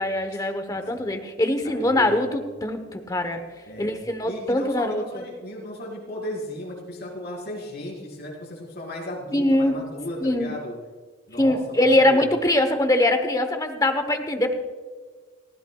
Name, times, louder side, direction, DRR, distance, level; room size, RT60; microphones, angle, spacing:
voice 1, 0.0-3.4 3.8-5.2 9.3-9.8 10.2-10.5 11.4-14.5, left 1 dB, 20° left, 7 dB, 1.0 m, -22 dB
voice 2, 0.7-1.0 1.6-2.3 3.7-3.9 4.3-10.7 11.3-12.2, left 1 dB, 55° left, -3 dB, 4.9 m, -35 dB
19.5 x 15.5 x 2.4 m, 1.5 s
head